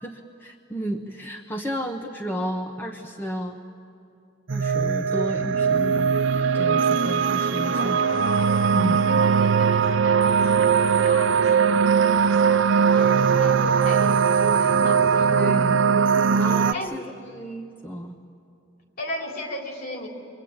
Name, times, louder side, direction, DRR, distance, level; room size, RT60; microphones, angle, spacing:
voice 1, 0.0-3.6 4.5-6.1 6.5-8.0 8.7-9.0 15.3-18.2, equal, 10° left, 2 dB, 1.1 m, -32 dB
sound 1, 4.5-16.7, right 6 dB, 80° right, 0.6 m, -20 dB
voice 2, 7.7-15.6 16.7-17.0 19.0-20.1, left 1 dB, 55° left, 1 dB, 4.0 m, -37 dB
27.0 x 23.5 x 8.9 m, 2.5 s
head